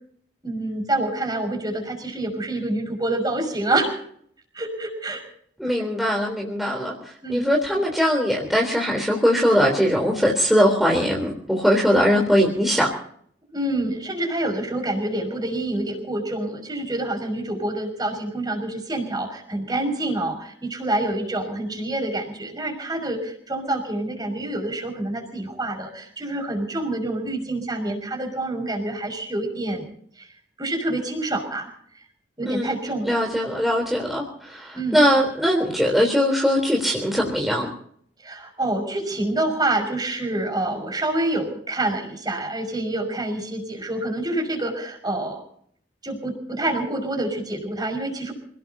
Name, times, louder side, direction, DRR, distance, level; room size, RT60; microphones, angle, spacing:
voice 1, 0.4-4.0 4.5-5.2 5.8-5.9 7.2-7.4 13.5-29.9 30.2-30.3 30.6-31.7 32.4-33.2 34.7-35.0 38.2-45.4 46.0-48.3, right 2 dB, 20° right, 4 dB, 5.6 m, -27 dB
voice 2, 5.6-6.9 7.3-12.9 32.5-32.7 33.1-37.7, equal, ahead, -1 dB, 3.6 m, -21 dB
28.0 x 18.0 x 2.8 m, 0.62 s
head